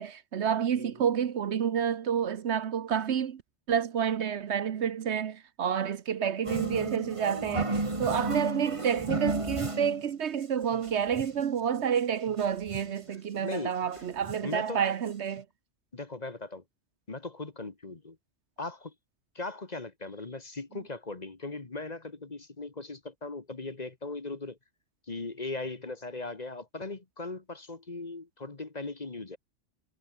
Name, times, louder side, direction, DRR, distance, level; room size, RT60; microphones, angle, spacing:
voice 1, 0.0-3.4 3.7-15.4, right 8 dB, 65° right, 1.1 m, -29 dB
sound 1, 6.4-10.0 10.4-10.5 10.7-11.5 12.0-12.1 12.3-13.0 13.5-13.6 13.9-14.6 15.1-15.2 15.4-15.5, right 2 dB, 25° right, 2.2 m, -34 dB
voice 2, 13.4-14.0 14.4-14.8 15.9-16.6 17.1-18.2 18.6-18.9 19.3-24.6 25.1-29.4, left 3 dB, 35° left, 1.6 m, -39 dB
omnidirectional pair, 1.3 m